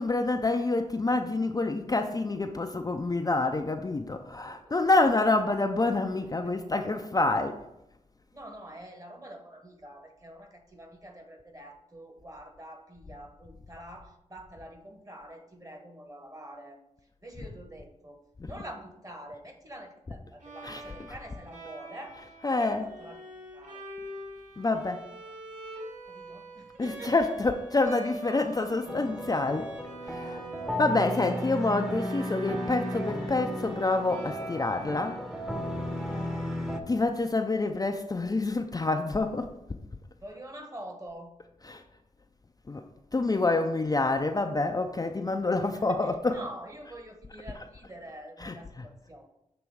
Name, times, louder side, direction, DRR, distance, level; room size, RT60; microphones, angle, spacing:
voice 1, 0.0-7.6 20.6-20.8 21.1-21.2 22.2-22.9 24.6-25.1 26.8-29.7 30.0-30.4 30.8-35.2 36.9-39.5 41.6-41.8 42.7-42.8 43.1-46.5 48.4-48.9, left 2 dB, 30° left, 5 dB, 0.4 m, -27 dB
voice 2, 8.3-16.8 17.2-22.2 22.5-23.2 23.5-23.8 26.1-27.3 30.2-30.8 40.2-41.3 45.6-49.3, right 1 dB, 25° right, 4 dB, 1.2 m, -46 dB
Bowed string instrument, 20.4-37.3, right 1 dB, 70° right, 1.6 m, -45 dB
sound 1, 28.9-36.8, equal, 5° right, 0.8 m, -34 dB
7.0 x 3.1 x 4.7 m, 0.85 s
cardioid pair, 55°, 14 cm